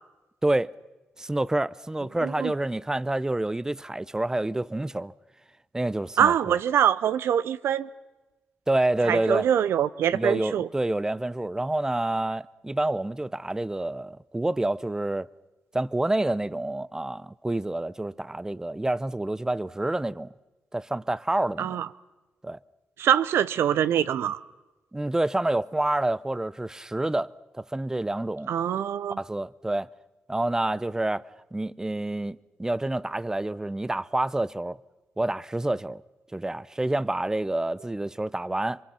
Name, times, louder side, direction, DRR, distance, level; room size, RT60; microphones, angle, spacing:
voice 1, 0.4-0.7 1.2-5.1 5.7-6.6 8.7-9.5 10.1-15.3 15.7-20.3 20.7-21.8 22.4-22.6 24.9-28.5 29.2-29.9 30.3-31.2 31.5-34.8 35.2-36.0 36.3-38.8, right 1 dB, 15° right, 0.7 m, -28 dB
voice 2, 2.2-2.5 6.2-7.9 9.1-10.7 21.6-21.9 23.0-24.4 28.5-29.2, right 9 dB, 70° right, 0.7 m, -24 dB
26.5 x 24.0 x 5.9 m
supercardioid pair, 55°, 4 cm